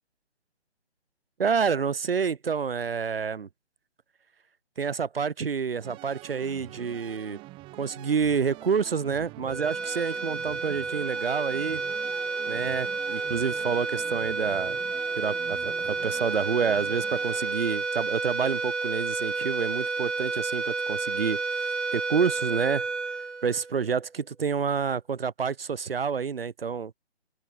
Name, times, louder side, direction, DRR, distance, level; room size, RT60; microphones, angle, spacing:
voice 1, 1.4-3.5 4.8-7.4 7.8-11.8 12.5-14.8 15.2-21.4 21.9-22.9 23.4-26.9, right 6 dB, 55° right, 1.9 m, -28 dB
sound 1, 5.8-17.5, right 20 dB, 15° right, 6.2 m, -46 dB
sound 2, 9.5-24.0, right 4 dB, 85° right, 2.5 m, -31 dB
open air
figure-of-eight pair, 155°, 34 cm